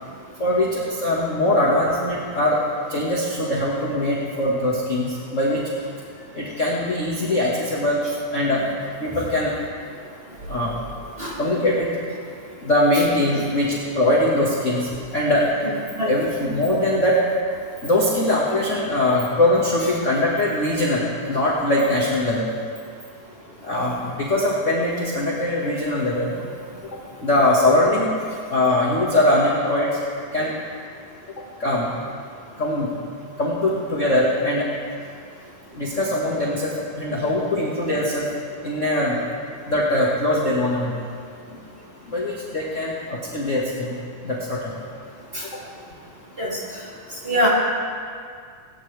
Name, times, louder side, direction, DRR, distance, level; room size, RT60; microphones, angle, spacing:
voice 1, 0.4-2.6 2.9-5.6 6.3-8.0 8.3-8.6 9.0-9.5 10.5-10.8 11.4-11.9 12.6-15.5 16.0-17.3 17.8-22.5 23.6-26.4 27.2-28.1 28.5-30.0 30.3-30.5 31.6-31.9 32.6-34.7 35.7-38.3 38.6-39.2 39.7-40.9 42.1-44.0 44.2-44.7, left 1 dB, 30° left, -5 dB, 1.7 m, -21 dB
voice 2, 11.2-11.3 16.0-16.1 45.3-45.4 46.4-46.6 47.2-47.5, equal, 20° right, -7 dB, 3.1 m, -22 dB
19.0 x 16.5 x 3.5 m, 2.2 s
omnidirectional pair, 3.5 m